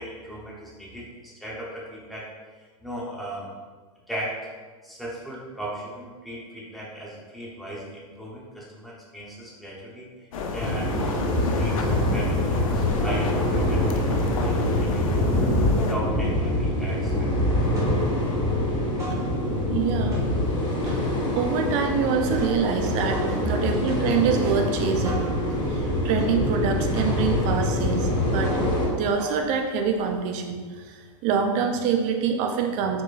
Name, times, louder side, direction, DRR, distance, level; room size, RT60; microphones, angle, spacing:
voice 1, 0.0-2.3 2.6-3.5 4.1-4.4 4.8-11.2 11.5-17.3, right 1 dB, ahead, -6 dB, 0.9 m, -37 dB
sound 1, 10.3-15.9, left 5 dB, 80° left, 0.5 m, -32 dB
sound 2, 10.6-28.9, left 1 dB, 25° left, 1.1 m, -25 dB
sound 3, 16.6-17.3 17.6-19.8 20.0-30.2, left 4 dB, 15° right, 1.2 m, -37 dB
voice 2, 19.7-20.5 20.8-21.1 21.3-25.2 25.7-28.5 28.9-33.0, right 6 dB, 45° right, 4 dB, 0.5 m, -26 dB
4.5 x 3.0 x 2.5 m, 1.5 s
hypercardioid pair, 120°, 18 cm